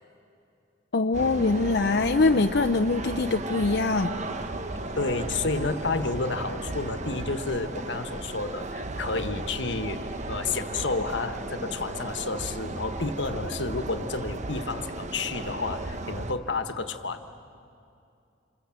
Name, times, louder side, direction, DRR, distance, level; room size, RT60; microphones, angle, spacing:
voice 1, 0.9-4.2, left 3 dB, 60° left, 6 dB, 0.7 m, -23 dB
sound 1, 1.1-16.3, right 2 dB, 40° right, 1.1 m, -35 dB
voice 2, 5.0-17.3, left 3 dB, 80° left, 9 dB, 1.3 m, -31 dB
28.0 x 27.5 x 7.6 m, 2.6 s
head